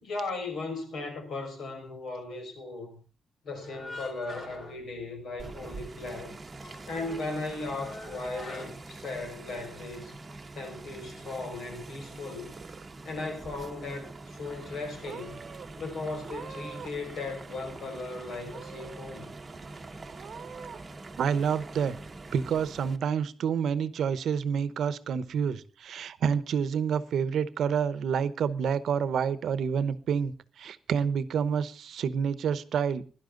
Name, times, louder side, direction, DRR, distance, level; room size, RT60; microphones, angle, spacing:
voice 1, 0.0-3.0 3.4-6.4 6.8-10.2 10.5-12.5 13.0-15.4 15.8-19.3, left 3 dB, 65° left, 5.3 m, -37 dB
sound 1, 3.5-5.6 5.9-6.0 6.4-9.6, left 2 dB, 40° left, 3.7 m, -45 dB
sound 2, 5.4-23.0, right 3 dB, 20° right, 1.2 m, -45 dB
Purr / Meow, 12.3-13.1 13.4-14.0 14.7-14.8 15.0-15.7 16.2-17.1 17.3-18.1 18.5-19.1 19.5-19.6 20.1-20.8, right 6 dB, 40° right, 1.0 m, -46 dB
voice 2, 21.2-22.0 22.3-33.0, right 7 dB, 65° right, 0.9 m, -28 dB
17.0 x 11.5 x 3.8 m
wide cardioid pair, 170°, 0 cm